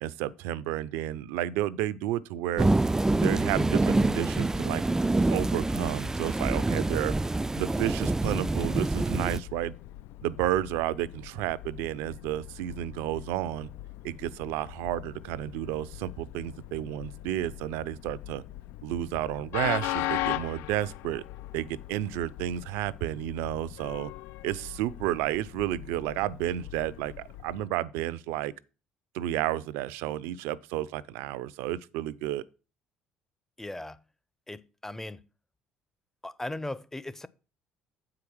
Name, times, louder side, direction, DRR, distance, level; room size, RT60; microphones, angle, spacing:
voice 1, 0.0-2.7 3.2-4.8 5.3-7.1 7.5-9.8 10.2-13.7 14.0-18.4 18.8-21.2 21.5-24.1 24.4-28.5 29.1-32.4, right 13 dB, 75° right, 0.5 m, -31 dB
sound 1, 2.6-9.4, right 2 dB, 15° right, 0.3 m, -26 dB
Train, 9.1-27.7, left 16 dB, 70° left, 0.3 m, -39 dB
voice 2, 33.6-34.0 34.5-35.2 36.2-37.3, left 1 dB, 10° left, 0.7 m, -38 dB
8.1 x 4.9 x 6.1 m
hypercardioid pair, 60°, 4 cm